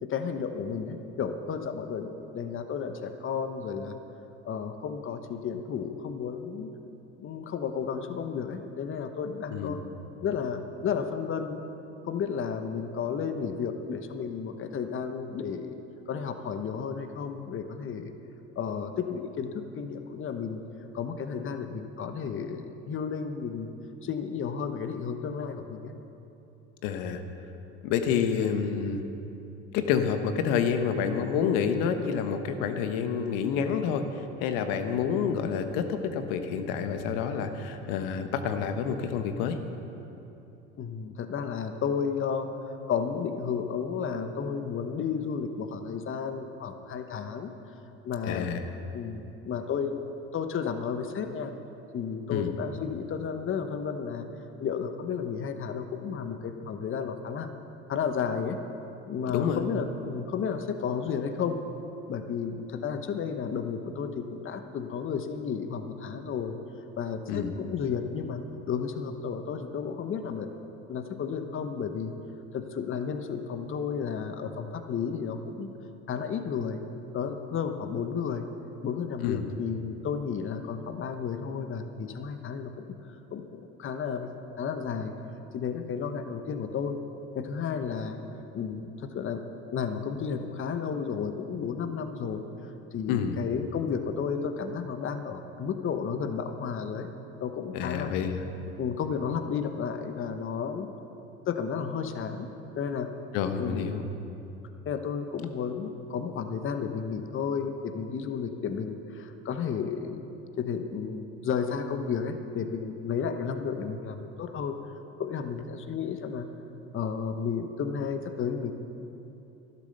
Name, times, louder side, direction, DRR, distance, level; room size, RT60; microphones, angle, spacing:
voice 1, 0.0-4.0 4.4-6.7 7.2-9.8 10.2-11.6 12.0-15.8 16.1-18.1 18.6-20.6 20.9-23.7 24.0-25.9 40.8-47.5 48.0-48.6 48.9-50.0 50.3-51.5 51.9-54.3 54.6-57.5 57.9-58.6 59.1-61.6 62.1-66.6 67.0-68.4 68.7-70.5 70.9-72.1 72.5-75.7 76.1-76.8 77.1-78.4 78.8-82.8 83.3-84.3 84.6-85.1 85.5-87.0 87.3-88.2 88.5-89.4 89.7-92.4 92.9-97.1 97.4-98.1 98.8-100.9 101.5-102.5 102.7-103.1 103.6-103.9 104.8-110.2 110.6-114.8 115.2-116.5 116.9-118.7, left 6 dB, 35° left, 7 dB, 1.1 m, -32 dB
voice 2, 9.5-9.8 26.8-27.2 27.8-29.0 29.7-34.0 34.4-39.6 48.3-48.6 52.3-52.5 59.3-59.7 67.3-67.5 79.2-79.5 93.1-93.4 97.7-98.4 103.3-104.0, left 7 dB, 70° left, 8 dB, 1.3 m, -28 dB
12.0 x 11.5 x 6.7 m, 3.0 s
hypercardioid pair, 85°, 34 cm